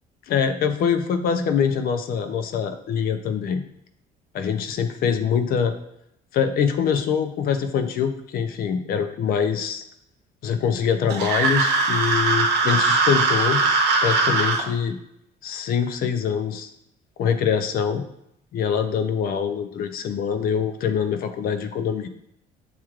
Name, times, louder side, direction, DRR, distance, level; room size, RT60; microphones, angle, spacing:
voice 1, 0.3-3.6 4.3-5.8 6.3-9.8 10.4-13.6 14.0-15.0 15.4-16.7 17.2-18.0 18.5-22.1, left 7 dB, 60° left, 9 dB, 0.5 m, -24 dB
sound 1, 11.1-14.6, right 3 dB, 75° right, 0.9 m, -20 dB
7.2 x 3.1 x 2.4 m, 0.77 s
cardioid pair, 110°, 17 cm